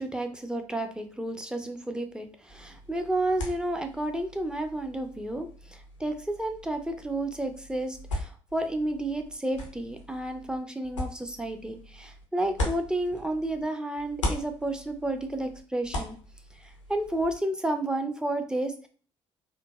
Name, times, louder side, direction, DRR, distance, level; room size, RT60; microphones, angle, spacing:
voice 1, 0.0-16.2 16.9-18.9, right 1 dB, 5° right, 5 dB, 0.5 m, -31 dB
sound 1, 2.5-13.7 14.0-17.4, left 1 dB, 90° left, 0.5 m, -39 dB
3.8 x 2.1 x 2.2 m, 0.43 s
figure-of-eight pair, 45°, 15 cm